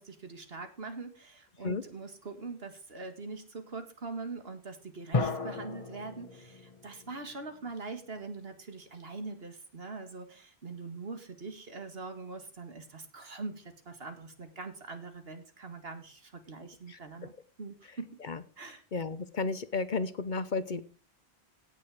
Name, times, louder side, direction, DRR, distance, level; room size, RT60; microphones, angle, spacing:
voice 1, 0.0-17.3 17.6-18.2 18.6-18.8, right 3 dB, 70° right, 7 dB, 2.1 m, -43 dB
sound 1, 5.1-7.9, left 3 dB, 35° left, 1.3 m, -35 dB
voice 2, 18.9-20.8, left 4 dB, 50° left, 14 dB, 0.9 m, -33 dB
17.0 x 6.6 x 4.9 m, 0.37 s
omnidirectional pair, 1.1 m